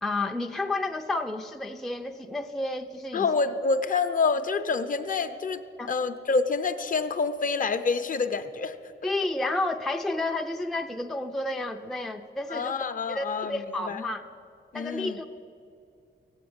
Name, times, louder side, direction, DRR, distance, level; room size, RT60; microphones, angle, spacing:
voice 1, 0.0-3.3 5.8-5.9 9.0-12.7 13.1-14.2 14.7-15.2, left 2 dB, ahead, 4 dB, 0.4 m, -31 dB
voice 2, 3.1-5.6 5.9-8.8 12.5-13.6 13.9-14.0 14.7-15.2, left 4 dB, 45° left, 10 dB, 0.6 m, -27 dB
15.5 x 8.8 x 9.4 m, 2.6 s
wide cardioid pair, 180°, 19 cm